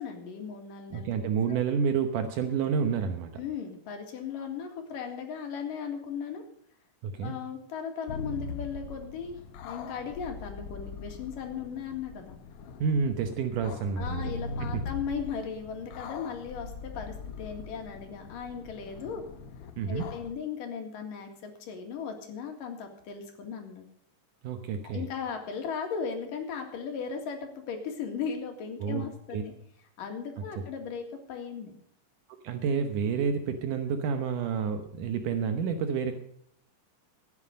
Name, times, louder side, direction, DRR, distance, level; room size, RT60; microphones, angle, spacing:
voice 1, 0.0-1.1 1.5-1.6 3.4-6.4 7.2-9.4 9.6-12.4 14.0-19.2 19.9-23.9 24.8-29.5 30.0-31.7, left 6 dB, 85° left, 3 dB, 3.7 m, -37 dB
voice 2, 0.9-3.3 7.0-7.3 12.8-14.3 19.8-20.0 24.4-25.1 28.8-29.1 29.3-29.4 32.4-36.1, right 6 dB, 75° right, 7 dB, 2.5 m, -29 dB
sound 1, 8.1-20.3, left 4 dB, 65° left, 1.5 m, -41 dB
16.0 x 9.7 x 5.2 m, 0.66 s
omnidirectional pair, 3.7 m